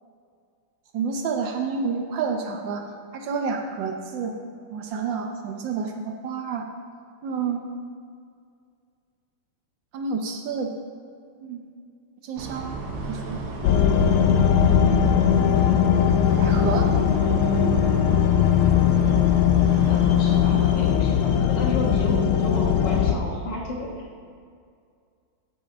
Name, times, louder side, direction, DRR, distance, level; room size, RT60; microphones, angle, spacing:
voice 1, 0.9-2.8 3.1-4.3 4.7-6.7 7.2-7.6 9.9-10.7 11.4-11.6 12.2-12.7 13.1-13.4 16.4-16.9, right 5 dB, 70° right, 4 dB, 1.3 m, -29 dB
sound 1, 12.4-21.0, right 3 dB, 90° right, 1.9 m, -33 dB
sound 2, 13.6-23.1, left 9 dB, 85° left, 1.5 m, -19 dB
voice 2, 19.9-24.2, left 1 dB, 60° left, -1 dB, 1.9 m, -32 dB
8.8 x 5.8 x 6.1 m, 2.2 s
omnidirectional pair, 2.3 m